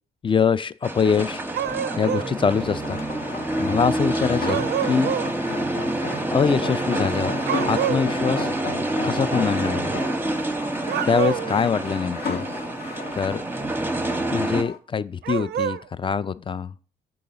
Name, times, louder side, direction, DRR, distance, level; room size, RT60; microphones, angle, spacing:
voice 1, 0.2-1.4 2.0-3.0 3.6-5.1 6.3-7.4 7.6-8.5 9.0-10.0 11.0-12.4 13.1-13.4 14.3-16.7, left 6 dB, 25° left, 0.3 m, -24 dB
sound 1, 0.8-14.6, right 1 dB, 10° right, 0.8 m, -27 dB
sound 2, 1.0-14.8, left 4 dB, 55° left, 0.9 m, -35 dB
sound 3, 1.5-2.3 4.4-5.3 7.5-8.1 10.8-11.6 15.2-15.8, right 10 dB, 55° right, 0.4 m, -27 dB
4.7 x 3.8 x 5.3 m
supercardioid pair, 55°, 20 cm